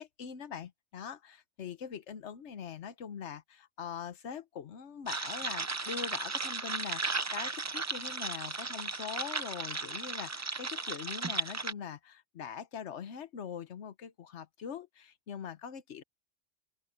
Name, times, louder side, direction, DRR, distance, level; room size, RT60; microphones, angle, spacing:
voice 1, 0.0-16.0, left 7 dB, 70° left, 1.2 m, -43 dB
sound 1, 5.1-11.7, right 3 dB, 25° right, 0.3 m, -35 dB
open air
omnidirectional pair, 1.2 m